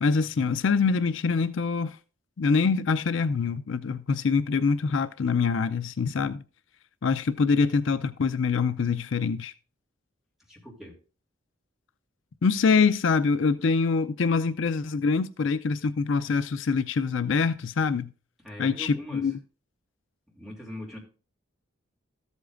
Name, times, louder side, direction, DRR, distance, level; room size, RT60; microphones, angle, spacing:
voice 1, 0.0-2.0 2.4-6.4 7.0-9.5 12.4-18.1 18.6-19.3, left 5 dB, 65° left, 0.5 m, -24 dB
voice 2, 10.5-11.0 18.4-19.3 20.3-21.0, left 1 dB, ahead, 2.8 m, -41 dB
13.5 x 8.1 x 2.5 m
head